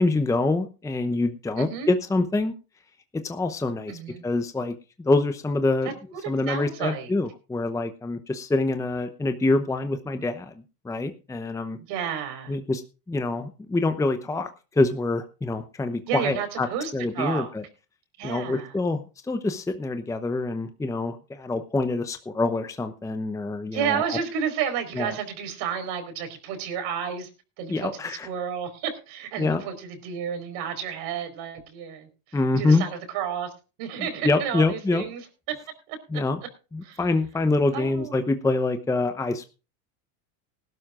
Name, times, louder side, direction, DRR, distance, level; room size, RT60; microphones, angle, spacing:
voice 1, 0.0-2.5 3.1-4.7 5.0-5.9 6.3-10.5 10.8-11.8 12.5-12.8 13.1-16.7 16.9-17.6 18.2-24.2 25.0-25.2 27.7-28.3 29.4-29.6 32.3-32.9 34.0-35.0 36.1-36.4 36.7-39.5, left 2 dB, 5° left, 8 dB, 0.8 m, -25 dB
voice 2, 1.6-1.9 3.9-4.2 5.8-7.1 11.9-12.5 16.1-17.5 18.2-18.7 23.7-27.3 27.6-33.5 33.8-35.5 35.9-36.2 36.8-37.0 37.7-38.2, right 8 dB, 60° right, 7 dB, 4.6 m, -31 dB
19.5 x 12.5 x 2.5 m, 0.32 s
supercardioid pair, 110°, 45 cm